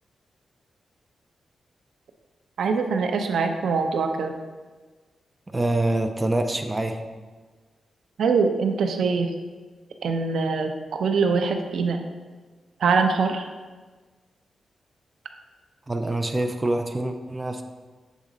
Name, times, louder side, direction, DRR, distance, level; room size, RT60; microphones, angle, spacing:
voice 1, 2.6-4.3 8.2-9.3 10.0-12.0 12.8-13.5, right 4 dB, 80° right, 5 dB, 0.6 m, -23 dB
voice 2, 5.5-7.0 15.9-17.6, right 2 dB, 15° right, 5 dB, 0.4 m, -25 dB
7.2 x 4.1 x 3.8 m, 1.4 s
wide cardioid pair, 120°, 0 cm